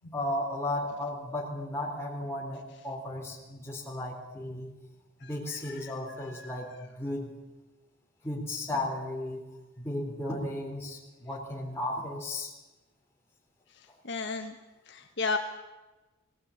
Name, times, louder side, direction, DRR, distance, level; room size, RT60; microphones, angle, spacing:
voice 1, 0.0-4.7 5.2-6.7 7.0-7.3 8.2-9.4 9.8-12.5, left 1 dB, 10° left, -1 dB, 3.7 m, -35 dB
voice 2, 5.2-5.9 6.3-6.6 14.0-14.6 14.9-15.4, left 4 dB, 55° left, 4 dB, 1.3 m, -34 dB
19.0 x 19.0 x 8.6 m, 1.1 s
head